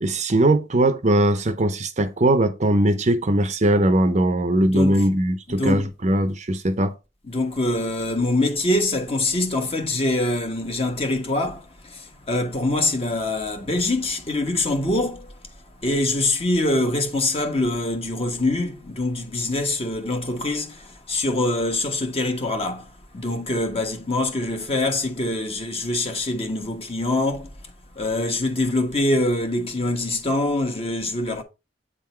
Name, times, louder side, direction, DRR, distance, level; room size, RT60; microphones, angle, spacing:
voice 1, 0.0-6.9, right 1 dB, 40° right, 0.7 m, -20 dB
voice 2, 4.6-5.1 5.5-5.9 7.2-15.3 15.8-22.9 23.1-27.5 28.0-31.4, left 2 dB, 30° left, 1.3 m, -24 dB
8.2 x 3.7 x 4.4 m
head